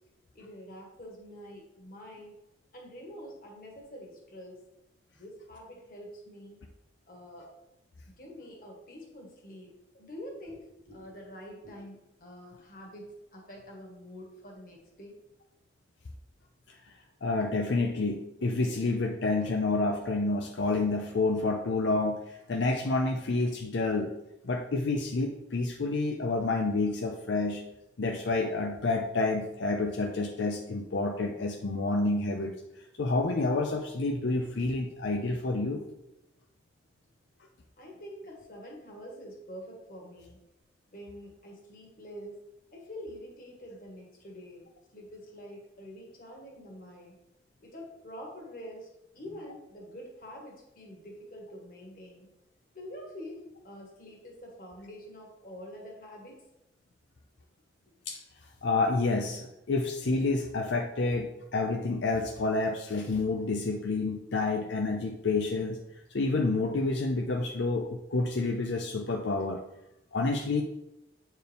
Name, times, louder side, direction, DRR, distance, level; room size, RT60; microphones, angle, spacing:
voice 1, 0.3-2.3 2.7-4.6 5.1-6.6 7.1-7.5 8.2-15.2 37.8-40.4 40.9-42.4 42.7-44.6 44.9-47.2 47.6-48.9 49.1-52.3 52.7-56.4 57.8-57.9, equal, 50° left, -1 dB, 1.6 m, -46 dB
voice 2, 17.2-24.1 24.4-27.6 28.0-32.5 33.0-35.8 58.1-58.2 58.6-65.8 66.1-69.6 70.1-70.6, left 3 dB, 80° left, 2 dB, 0.6 m, -29 dB
7.7 x 4.5 x 3.5 m, 0.89 s
head